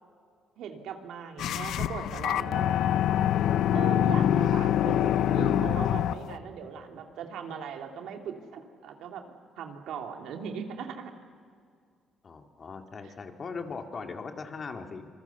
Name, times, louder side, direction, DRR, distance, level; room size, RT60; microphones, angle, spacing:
voice 1, 0.6-2.8 3.7-9.2 9.6-11.1 13.0-13.1, right 7 dB, 85° right, 4 dB, 2.5 m, -39 dB
sound 1, 1.4-6.4, left 11 dB, 80° left, 0.6 m, -25 dB
voice 2, 12.2-15.1, left 4 dB, 45° left, 5 dB, 2.3 m, -39 dB
26.5 x 21.5 x 7.1 m, 2.2 s
cardioid pair, 90°, 0 cm